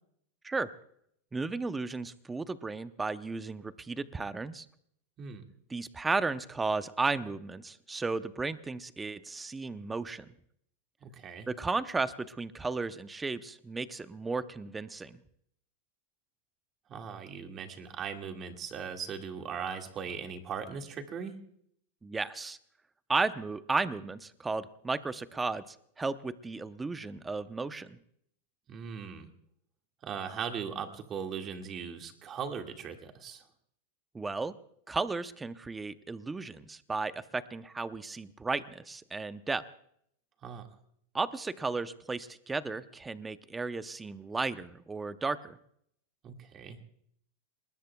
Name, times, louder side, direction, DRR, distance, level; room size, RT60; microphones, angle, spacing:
voice 1, 1.3-4.7 5.7-10.3 11.5-15.2 22.0-22.6 23.1-28.0 34.1-34.5 34.9-39.6 41.1-45.6, right 3 dB, 10° right, 12 dB, 0.7 m, -34 dB
voice 2, 11.0-11.5 16.9-21.4 28.7-29.3 30.0-33.4 40.4-40.7 46.2-46.8, right 6 dB, 30° right, 4 dB, 1.9 m, -39 dB
27.5 x 20.5 x 2.3 m, 0.69 s
supercardioid pair, 145°, 0 cm